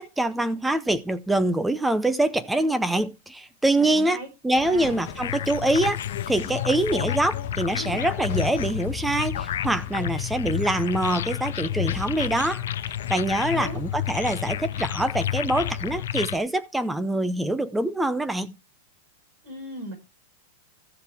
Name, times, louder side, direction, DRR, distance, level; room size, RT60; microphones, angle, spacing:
voice 1, 0.0-6.0 6.3-18.5, right 1 dB, 5° right, 0.6 m, -25 dB
voice 2, 3.8-4.3 4.6-5.1 13.4-13.8 19.4-19.9, right 1 dB, 35° right, 5.3 m, -38 dB
sound 1, 4.5-16.1, left 8 dB, 45° left, 2.1 m, -39 dB
sound 2, 5.2-16.4, left 12 dB, 80° left, 0.5 m, -31 dB
13.5 x 7.2 x 3.4 m
supercardioid pair, 180°, 0 cm